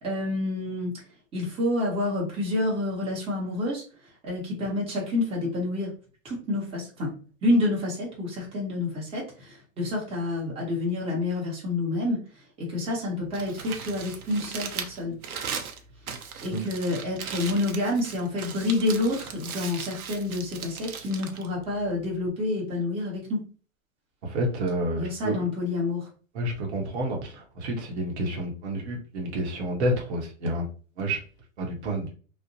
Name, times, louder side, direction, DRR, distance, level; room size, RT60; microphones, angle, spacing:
voice 1, 0.0-0.9 1.3-3.8 4.2-5.9 6.2-7.1 7.4-12.2 12.6-15.2 16.4-23.4 25.0-26.1, left 2 dB, 15° right, -4 dB, 0.8 m, -28 dB
Crumpling crinkling, 13.2-22.3, right 6 dB, 90° right, 0.7 m, -38 dB
voice 2, 24.2-25.5 26.3-30.7 31.0-31.2 31.6-32.1, right 1 dB, 50° right, 1 dB, 0.8 m, -29 dB
2.5 x 2.0 x 2.7 m, 0.38 s
hypercardioid pair, 130°, 42 cm